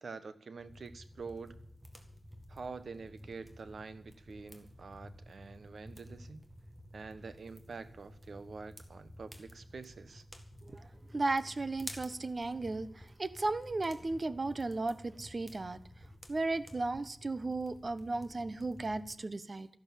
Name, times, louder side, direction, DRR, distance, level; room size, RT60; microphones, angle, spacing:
voice 1, 0.0-1.6 2.5-6.4 6.9-10.2, right 4 dB, 65° right, 12 dB, 1.2 m, -46 dB
sound 1, 0.6-19.2, equal, 15° right, 2.1 m, -52 dB
voice 2, 11.1-15.8 16.3-19.7, right 2 dB, 40° right, 14 dB, 1.0 m, -35 dB
13.5 x 12.0 x 7.5 m, 0.65 s
wide cardioid pair, 110°, 0 cm